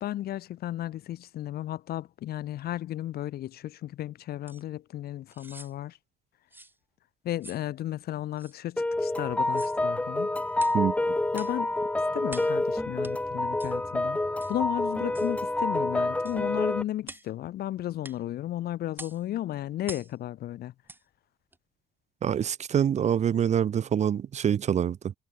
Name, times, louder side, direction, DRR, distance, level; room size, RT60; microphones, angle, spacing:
voice 1, 0.0-6.0 7.2-10.3 11.3-11.8 12.1-14.2 14.5-20.7, left 13 dB, 65° left, 2.5 m, -34 dB
sound 1, 4.5-4.6 5.3-5.7 6.5-6.8 7.4-7.7 8.4-8.6 9.4-9.8 10.6-10.8 11.3-11.6 12.3-12.6 13.0-13.2 13.6-13.8 14.4-14.6 15.1-15.3 16.2-16.4 17.0-17.3 18.0-18.2 18.9-19.2 19.8-20.1 20.8-21.0 21.5-21.6, right 2 dB, 10° right, 2.5 m, -46 dB
sound 2, 8.8-16.8, left 2 dB, 10° left, 0.7 m, -28 dB
voice 2, 22.2-25.1, right 9 dB, 40° right, 0.9 m, -25 dB
cardioid pair, 110°, 17 cm